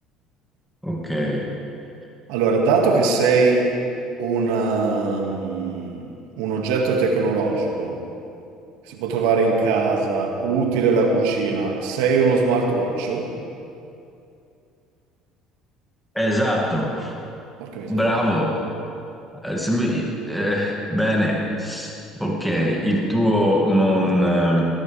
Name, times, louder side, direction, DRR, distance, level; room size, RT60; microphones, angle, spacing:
voice 1, 0.8-1.5 16.1-17.1 17.9-18.6 19.4-21.9 22.2-24.7, equal, ahead, -3 dB, 2.5 m, -22 dB
voice 2, 2.3-3.7 4.2-8.0 8.9-13.3 17.6-18.2, right 4 dB, 80° right, 1 dB, 2.1 m, -21 dB
19.5 x 19.0 x 3.5 m, 2.6 s
supercardioid pair, 80°, 0 cm